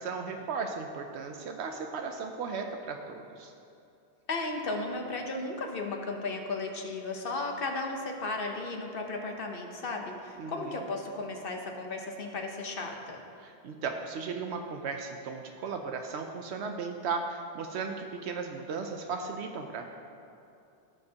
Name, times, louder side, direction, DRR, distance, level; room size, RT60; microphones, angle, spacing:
voice 1, 0.0-3.5 10.4-10.7 13.4-19.9, right 5 dB, 80° right, 4 dB, 0.9 m, -36 dB
voice 2, 4.3-13.2, left 3 dB, 55° left, 2 dB, 1.0 m, -35 dB
15.5 x 6.5 x 2.9 m, 2.7 s
omnidirectional pair, 1.1 m